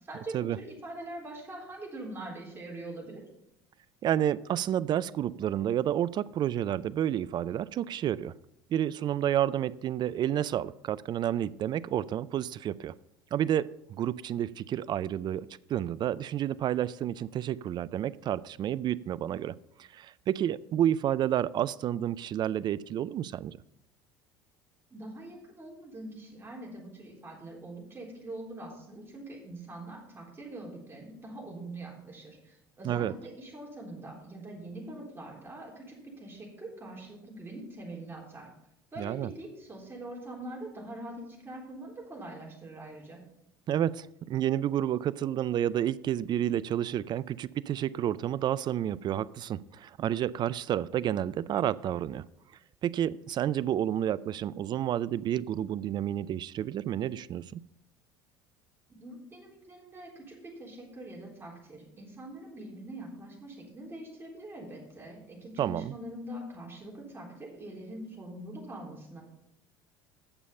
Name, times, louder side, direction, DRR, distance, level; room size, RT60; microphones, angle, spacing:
voice 1, 0.1-3.2 24.9-38.5 38.9-43.2 59.0-69.2, right 1 dB, 20° right, 3.7 m, -43 dB
voice 2, 4.0-8.3 8.7-12.9 13.3-23.6 32.8-33.1 39.0-39.3 43.7-52.2 52.8-57.6 65.6-65.9, right 11 dB, 40° right, 0.4 m, -30 dB
8.9 x 7.0 x 5.5 m
hypercardioid pair, 70°, 11 cm